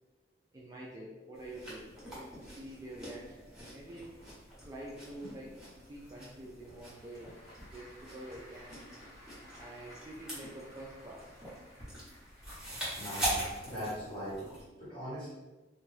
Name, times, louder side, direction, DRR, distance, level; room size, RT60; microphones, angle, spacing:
voice 1, 0.5-4.2 4.6-5.6 5.9-7.3 7.7-8.8 9.6-11.3 13.1-13.2 14.3-14.4, right 1 dB, 20° right, -4 dB, 0.3 m, -47 dB
sound 1, 1.3-14.6, right 1 dB, 5° right, 1.0 m, -43 dB
Applause / Crowd, 6.4-13.1, equal, 75° left, 1.4 m, -57 dB
voice 2, 13.0-14.5 14.8-15.3, equal, 25° left, -9 dB, 1.4 m, -40 dB
2.7 x 2.4 x 3.1 m, 1.1 s
head